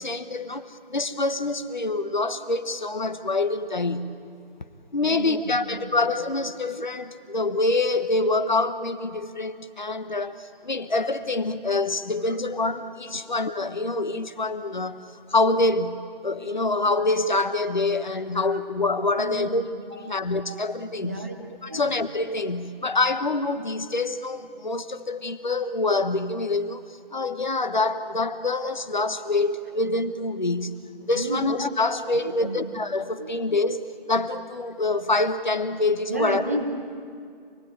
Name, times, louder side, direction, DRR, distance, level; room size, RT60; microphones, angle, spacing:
voice 1, 0.0-4.1 4.9-15.0 15.3-19.6 20.0-21.2 21.6-26.8 27.1-30.7 31.1-36.4, left 2 dB, 50° left, 11 dB, 1.3 m, -26 dB
voice 2, 5.0-6.0 13.1-13.2 18.1-18.6 19.2-19.6 19.9-20.1 20.5-20.6 21.0-21.3 21.7-21.9 31.1-31.5 32.0-32.6 33.2-33.3 36.1-36.6, right 2 dB, 15° right, 2 dB, 1.0 m, -33 dB
28.0 x 19.0 x 8.9 m, 2.2 s
figure-of-eight pair, 165°, 29 cm